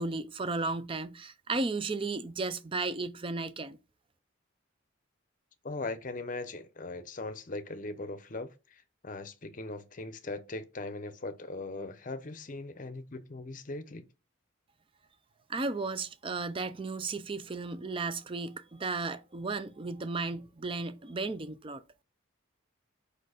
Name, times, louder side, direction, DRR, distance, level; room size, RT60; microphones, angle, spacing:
voice 1, 0.0-3.8 15.5-21.8, right 3 dB, 25° right, 0.4 m, -34 dB
voice 2, 5.6-8.5 9.0-14.1, left 2 dB, 40° left, 0.7 m, -39 dB
5.1 x 4.4 x 4.9 m
head